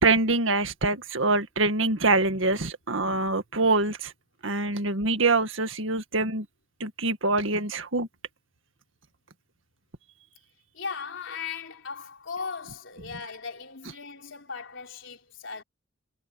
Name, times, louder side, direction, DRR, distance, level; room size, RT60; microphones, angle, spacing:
voice 1, 0.0-4.1 4.4-6.5 6.8-8.1, right 3 dB, 80° right, 1.9 m, -25 dB
voice 2, 10.7-15.6, left 5 dB, 75° left, 3.9 m, -37 dB
head